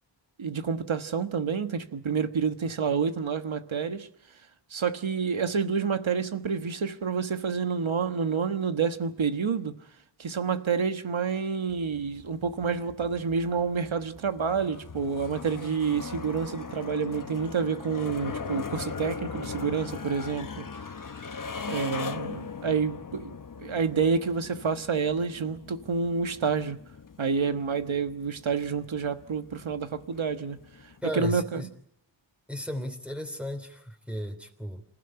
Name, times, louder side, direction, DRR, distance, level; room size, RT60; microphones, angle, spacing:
voice 1, 0.4-4.1 4.7-9.8 10.2-20.7 21.7-26.8 27.2-30.6 31.1-31.6, right 5 dB, 85° right, 1.4 m, -28 dB
sound 1, 11.7-31.0, left 5 dB, 45° left, 1.0 m, -40 dB
voice 2, 31.0-31.7 32.5-34.8, equal, 5° right, 3.2 m, -35 dB
26.5 x 15.5 x 9.9 m
wide cardioid pair, 60°, 46 cm